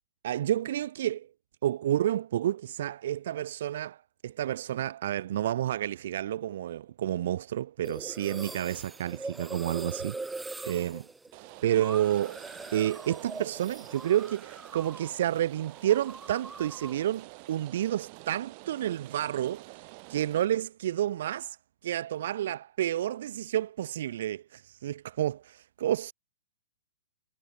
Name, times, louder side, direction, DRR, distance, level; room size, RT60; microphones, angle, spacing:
voice 1, 0.2-1.3 1.6-10.4 10.7-11.1 11.6-12.4 12.7-21.6 21.8-26.1, right 12 dB, 55° right, 0.6 m, -30 dB
sound 1, 7.8-15.2 15.5-17.0, right 3 dB, 5° right, 2.5 m, -42 dB
Rain, 11.3-20.5, right 34 dB, 40° right, 7.4 m, -48 dB
figure-of-eight pair, 115°, 0 cm